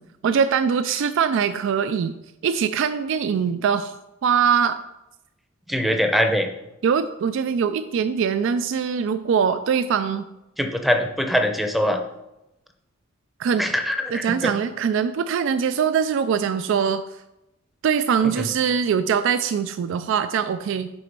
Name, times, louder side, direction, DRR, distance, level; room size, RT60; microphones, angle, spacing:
voice 1, 0.2-2.2 2.4-4.0 4.2-4.8 6.8-10.3 13.4-13.7 14.1-17.0 17.8-20.9, right 7 dB, 65° right, 12 dB, 0.3 m, -22 dB
voice 2, 5.7-6.5 10.6-12.0 13.6-14.5 18.2-18.5, equal, ahead, 5 dB, 0.6 m, -22 dB
6.9 x 4.2 x 5.2 m, 0.91 s
head